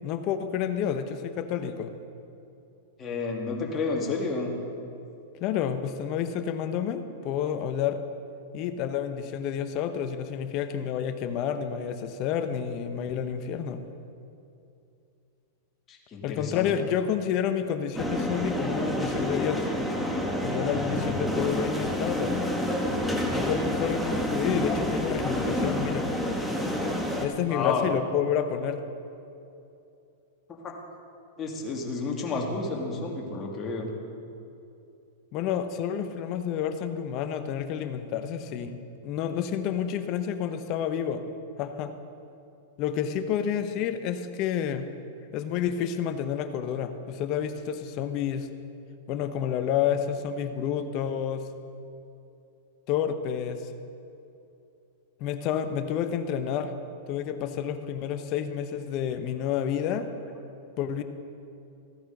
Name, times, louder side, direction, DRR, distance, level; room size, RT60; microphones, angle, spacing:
voice 1, 0.0-1.9 5.4-8.0 8.5-13.8 16.2-19.7 20.4-22.4 23.3-26.1 27.2-28.8 35.3-41.2 41.6-41.9 42.8-44.9 45.3-48.5 49.1-51.5 52.9-53.7 55.2-56.7 57.1-60.1 60.8-61.0, left 8 dB, 45° left, 9 dB, 0.8 m, -29 dB
voice 2, 3.0-4.5 15.9-16.7 27.5-27.9 30.6-30.7 31.4-33.9, left 3 dB, 30° left, 0 dB, 2.0 m, -30 dB
sound 1, 17.9-27.3, equal, ahead, 1.3 m, -28 dB
15.0 x 9.5 x 4.0 m, 2.7 s
hypercardioid pair, 105°, 0 cm